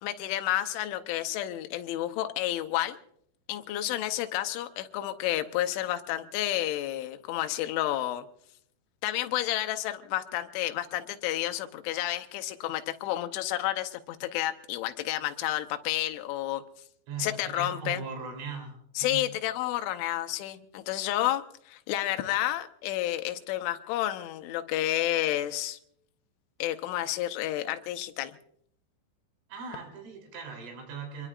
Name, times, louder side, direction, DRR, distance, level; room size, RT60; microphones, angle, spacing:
voice 1, 0.0-3.0 3.5-8.2 9.0-16.6 17.2-18.0 19.0-25.8 26.6-28.3, left 14 dB, 80° left, 8 dB, 3.2 m, -30 dB
voice 2, 17.1-19.3 29.5-31.3, right 5 dB, 85° right, 2 dB, 6.0 m, -39 dB
26.5 x 22.0 x 2.5 m, 0.71 s
omnidirectional pair, 5.5 m